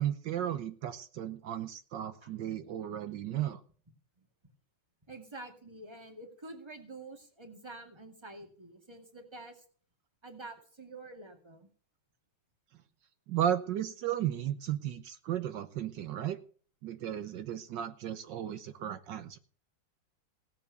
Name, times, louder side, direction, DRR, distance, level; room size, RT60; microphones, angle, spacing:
voice 1, 0.0-3.6 13.3-16.4 16.8-19.4, right 11 dB, 70° right, 11 dB, 1.4 m, -34 dB
voice 2, 5.1-9.6 10.2-11.7, right 2 dB, 15° right, 4 dB, 2.1 m, -48 dB
17.5 x 7.5 x 6.8 m, 0.44 s
omnidirectional pair, 2.1 m